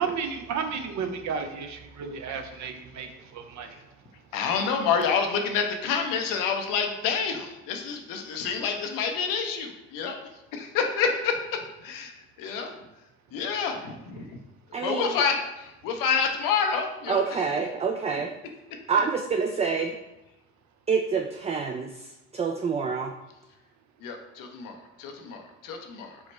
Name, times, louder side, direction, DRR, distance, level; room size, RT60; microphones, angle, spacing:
voice 1, 0.0-3.8, right 6 dB, 55° right, 7 dB, 0.6 m, -33 dB
voice 2, 4.3-10.2 10.5-11.3 11.8-12.7 13.3-14.4 14.8-17.4 24.0-26.2, left 6 dB, 75° left, 4 dB, 0.6 m, -28 dB
voice 3, 14.7-15.2 17.1-18.3 18.9-20.0 20.9-23.1, right 5 dB, 20° right, 4 dB, 0.3 m, -27 dB
4.5 x 2.1 x 4.1 m, 0.97 s
hypercardioid pair, 45°, 34 cm